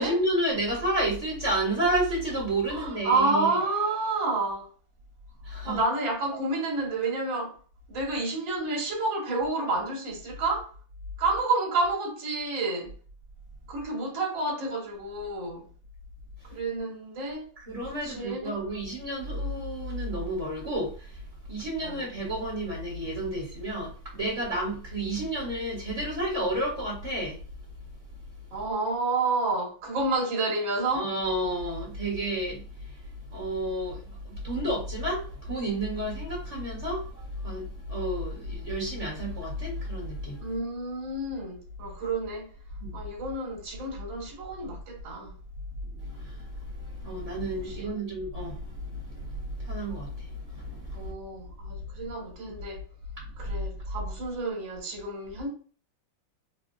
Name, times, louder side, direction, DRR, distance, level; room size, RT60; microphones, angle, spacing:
voice 1, 0.0-3.6 5.4-5.8 17.6-27.4 30.9-40.5 42.8-43.0 45.9-51.1 53.2-53.5, right 1 dB, 20° right, 1.4 m, -31 dB
voice 2, 2.7-4.7 5.6-7.6 7.9-10.7 11.2-12.9 13.7-15.7 16.5-17.5 18.0-18.6 21.8-22.0 28.5-31.1 40.4-42.5 42.9-45.3 47.7-47.9 50.9-52.8 53.4-55.5, right 3 dB, 70° right, 2.0 m, -29 dB
4.5 x 2.6 x 2.3 m
omnidirectional pair, 2.2 m